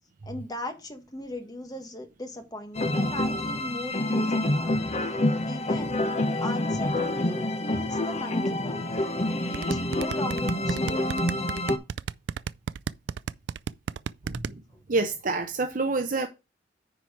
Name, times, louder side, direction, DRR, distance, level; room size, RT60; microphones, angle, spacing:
voice 1, 0.2-4.8 5.4-6.0 6.4-8.8 9.2-11.4 14.7-14.8, left 1 dB, 20° left, 1.5 m, -38 dB
sound 1, 2.7-11.8, left 1 dB, 35° left, 1.1 m, -27 dB
sound 2, 9.5-14.5, right 6 dB, 70° right, 0.4 m, -32 dB
voice 2, 14.3-14.6 14.9-16.3, right 3 dB, 50° right, 0.8 m, -27 dB
9.7 x 4.6 x 4.9 m
head